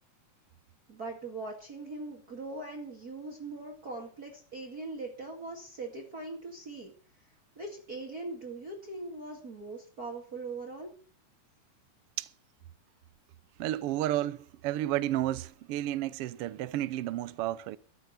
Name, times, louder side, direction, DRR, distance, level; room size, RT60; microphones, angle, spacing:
voice 1, 0.9-6.9 7.6-10.9, right 3 dB, 30° right, 2.4 m, -41 dB
voice 2, 13.6-17.8, right 14 dB, 75° right, 1.3 m, -32 dB
14.0 x 9.3 x 6.8 m
omnidirectional pair, 3.5 m